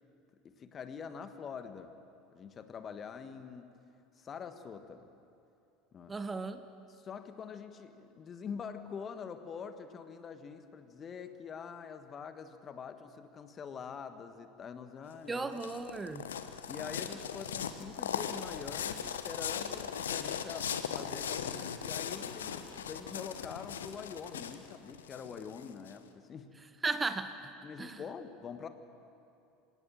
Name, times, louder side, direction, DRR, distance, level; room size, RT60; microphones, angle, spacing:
voice 1, 0.4-1.9 2.3-3.8 4.2-5.1 5.9-6.2 6.9-15.6 16.7-26.6 27.6-28.7, left 6 dB, 35° left, 9 dB, 1.5 m, -45 dB
voice 2, 6.1-6.6 15.3-16.3 26.8-27.3 27.8-28.0, right 3 dB, 20° right, 10 dB, 1.1 m, -35 dB
sound 1, 15.1-25.9, left 8 dB, 75° left, 1.0 m, -39 dB
26.5 x 18.0 x 7.6 m, 2.7 s
figure-of-eight pair, 70°, 0 cm